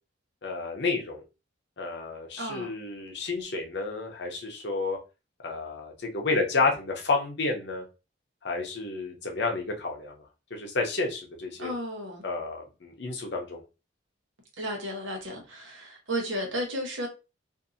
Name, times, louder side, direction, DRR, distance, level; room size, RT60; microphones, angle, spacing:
voice 1, 0.4-1.2 1.8-5.0 5.4-7.8 8.4-10.2 10.5-11.7 12.2-13.6, left 3 dB, 60° left, 0.6 m, -30 dB
voice 2, 2.4-2.7 11.6-12.2 14.6-17.1, equal, 85° right, 0.9 m, -33 dB
2.7 x 2.5 x 2.5 m
head